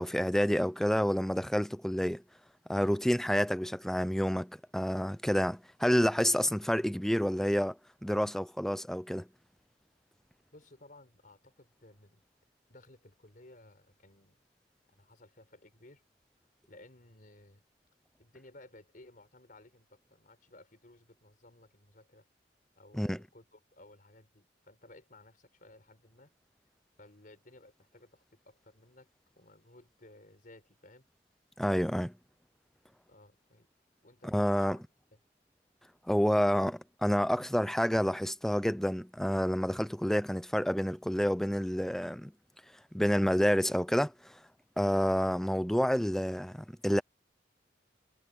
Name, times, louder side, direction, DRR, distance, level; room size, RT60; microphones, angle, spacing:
voice 1, 0.0-2.2 2.7-7.8 8.0-9.3 22.9-23.2 31.6-32.1 34.3-34.8 36.1-42.3 42.9-44.3 44.8-47.0, equal, ahead, 0.5 m, -29 dB
voice 2, 10.5-12.2 12.7-14.4 14.9-16.0 16.7-17.6 18.2-22.3 22.8-26.3 27.0-29.1 29.4-31.0 33.1-33.7 34.0-34.8 35.1-35.2, left 2 dB, 50° left, 4.8 m, -57 dB
head